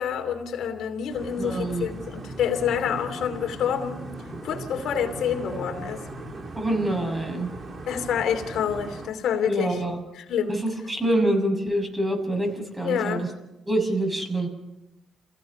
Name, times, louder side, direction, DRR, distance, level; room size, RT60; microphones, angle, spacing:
voice 1, 0.0-4.0 4.4-6.0 7.9-9.8 10.1-10.6 12.8-13.3, left 8 dB, 75° left, 2.9 m, -27 dB
sound 1, 1.1-9.1, right 2 dB, 40° right, 3.2 m, -38 dB
voice 2, 1.4-1.9 6.5-7.5 9.5-10.0 10.5-13.3 13.7-14.5, right 1 dB, 15° right, 6.5 m, -26 dB
29.0 x 16.5 x 5.4 m
cardioid pair, 90°, 0 cm